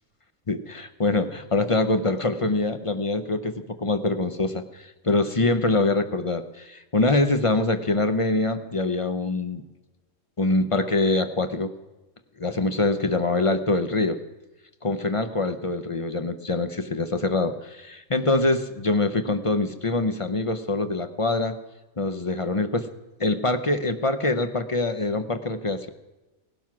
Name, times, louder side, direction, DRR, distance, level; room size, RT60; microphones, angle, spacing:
voice 1, 0.5-9.6 10.4-11.7 12.4-14.2 14.8-21.6 22.0-22.9 23.2-25.9, left 2 dB, 35° left, 9 dB, 0.5 m, -24 dB
17.5 x 12.0 x 6.0 m, 1.1 s
omnidirectional pair, 1.5 m